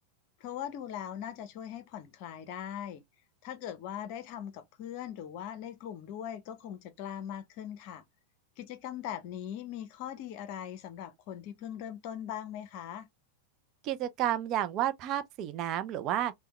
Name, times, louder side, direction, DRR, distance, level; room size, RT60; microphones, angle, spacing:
voice 1, 0.4-3.0 3.4-8.0 8.6-13.1, left 10 dB, 45° left, 0.6 m, -40 dB
voice 2, 13.8-16.3, right 11 dB, 35° right, 0.4 m, -31 dB
3.4 x 2.2 x 2.9 m
figure-of-eight pair, 90°, 0 cm